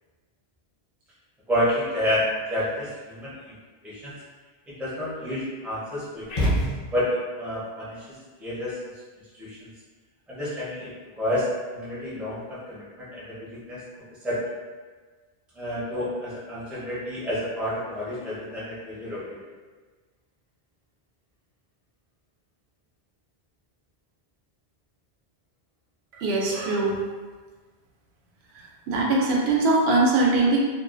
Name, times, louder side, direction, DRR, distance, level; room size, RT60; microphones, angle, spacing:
voice 1, 1.5-3.6 3.8-4.1 4.7-6.6 6.9-8.8 9.4-9.7 10.3-13.8 14.2-14.4 15.5-19.4, left 1 dB, ahead, -9 dB, 0.5 m, -30 dB
sound 1, 6.3-7.3, equal, 45° left, 0.7 m, -26 dB
voice 2, 26.1-27.0 28.9-30.6, right 2 dB, 80° right, -3 dB, 0.8 m, -21 dB
2.4 x 2.3 x 2.4 m, 1.4 s
omnidirectional pair, 1.1 m